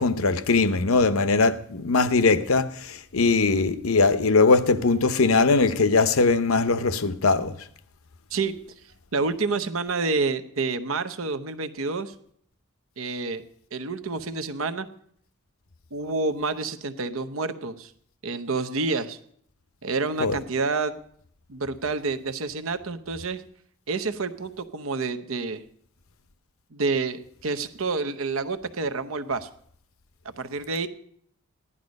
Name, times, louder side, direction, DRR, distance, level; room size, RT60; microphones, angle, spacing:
voice 1, 0.0-2.7 3.1-7.5 20.2-20.3, left 4 dB, 80° left, 0.8 m, -20 dB
voice 2, 9.1-12.1 13.0-13.4 13.7-14.9 15.9-17.9 18.2-19.2 19.8-21.0 21.5-23.4 23.9-25.6 26.7-29.5 30.4-30.9, right 3 dB, 75° right, 0.9 m, -28 dB
15.5 x 11.0 x 5.3 m
head